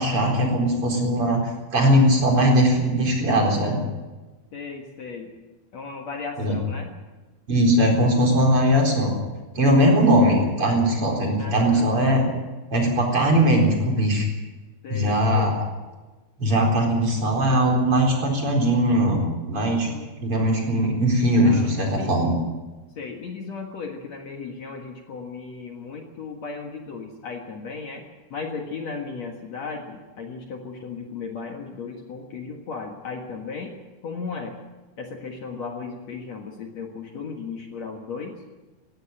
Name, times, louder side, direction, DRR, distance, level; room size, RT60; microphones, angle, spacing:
voice 1, 0.0-1.4 1.7-3.8 6.4-6.6 7.5-9.1 9.5-12.2 12.7-14.3 14.9-15.6 16.4-19.9 20.2-22.3, equal, 35° right, 0 dB, 4.8 m, -20 dB
voice 2, 4.5-5.3 5.7-6.9 11.4-11.9 14.8-15.6 19.6-20.1 21.4-22.1 23.0-33.7 34.0-34.6 35.0-38.4, left 4 dB, 55° left, 2 dB, 2.5 m, -36 dB
19.0 x 16.0 x 9.1 m, 1.2 s
omnidirectional pair, 4.3 m